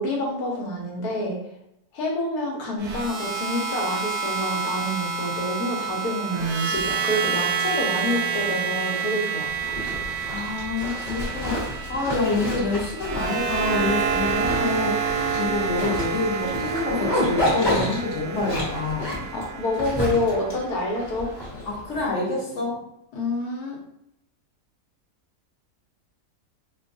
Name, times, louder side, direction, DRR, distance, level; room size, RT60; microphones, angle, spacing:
voice 1, 0.0-1.4 1.9-9.5 19.3-21.3 23.1-23.8, left 1 dB, 85° left, -1 dB, 1.4 m, -27 dB
sound 1, 2.8-21.0, right 6 dB, 70° right, 0.8 m, -28 dB
Zipper (clothing), 9.5-22.0, left 1 dB, 35° left, 1.3 m, -30 dB
voice 2, 10.2-15.0 15.4-19.1 21.6-22.8, left 3 dB, 55° left, -5 dB, 1.2 m, -27 dB
4.3 x 2.3 x 2.5 m, 0.79 s
omnidirectional pair, 1.6 m